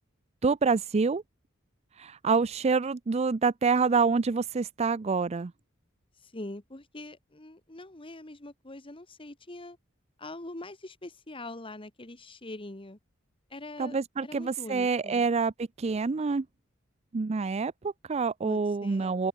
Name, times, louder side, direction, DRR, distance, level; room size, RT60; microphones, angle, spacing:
voice 1, 0.4-1.2 2.0-5.5 13.8-16.5 17.1-19.3, right 4 dB, 30° right, 0.4 m, -27 dB
voice 2, 6.2-9.8 10.2-13.0 13.5-14.0 14.2-15.3 18.4-19.2, left 2 dB, 25° left, 1.7 m, -43 dB
open air
head